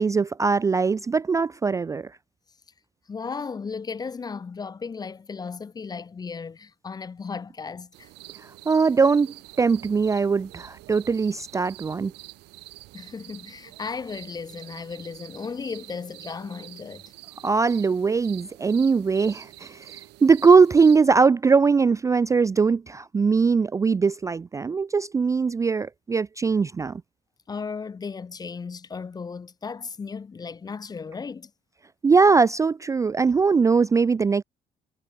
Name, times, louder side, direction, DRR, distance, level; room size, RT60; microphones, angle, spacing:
voice 1, 0.0-2.1 8.4-12.1 17.4-27.0 32.0-34.4, right 5 dB, 20° right, 0.3 m, -21 dB
voice 2, 3.1-8.1 12.9-17.0 27.5-31.5, left 5 dB, 25° left, 0.6 m, -35 dB
sound 1, 7.9-21.0, right 20 dB, 90° right, 1.1 m, -47 dB
cardioid pair, 110°, 17 cm